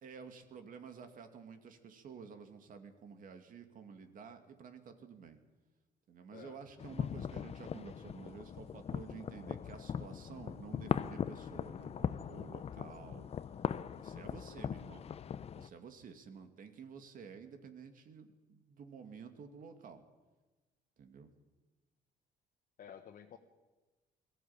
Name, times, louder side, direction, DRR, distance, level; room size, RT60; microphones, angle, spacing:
voice 1, 0.0-5.4 6.1-13.3 13.9-15.1 15.5-20.0 21.0-21.3, right 6 dB, 55° right, 7 dB, 2.4 m, -51 dB
voice 2, 6.3-6.6 22.8-23.4, left 8 dB, 55° left, 3 dB, 1.4 m, -52 dB
sound 1, 6.8-15.7, left 8 dB, 40° left, 0.7 m, -40 dB
22.0 x 15.0 x 8.8 m, 1.2 s
cardioid pair, 110°, 17 cm